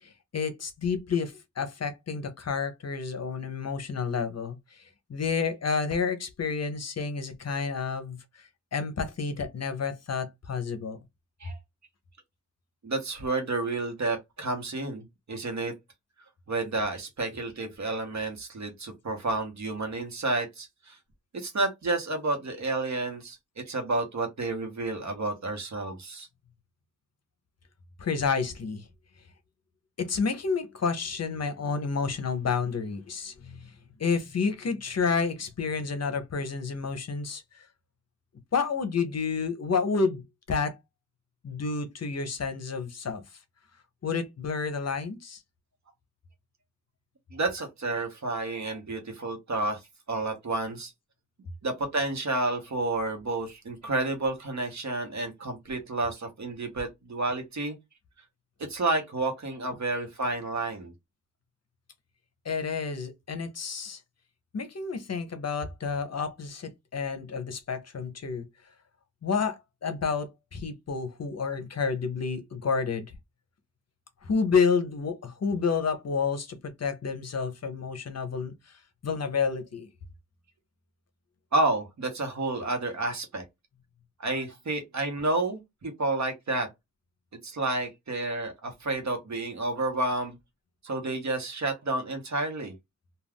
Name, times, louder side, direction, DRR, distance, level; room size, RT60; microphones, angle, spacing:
voice 1, 0.0-4.8 5.1-11.0 28.0-28.8 30.0-33.7 34.0-37.6 38.5-40.2 40.5-40.8 41.4-43.2 44.0-45.4 62.4-64.0 64.5-68.5 69.2-73.1 74.2-78.5 79.0-79.9, left 5 dB, 55° left, 0.6 m, -30 dB
voice 2, 12.8-15.7 16.5-21.0 21.3-23.4 23.7-26.3 47.3-49.8 50.1-50.9 51.6-57.8 58.7-60.9 81.5-83.4 84.2-86.7 87.4-90.4 90.8-92.7, right 2 dB, 65° right, 0.9 m, -30 dB
2.3 x 2.2 x 3.4 m
wide cardioid pair, 110°, 31 cm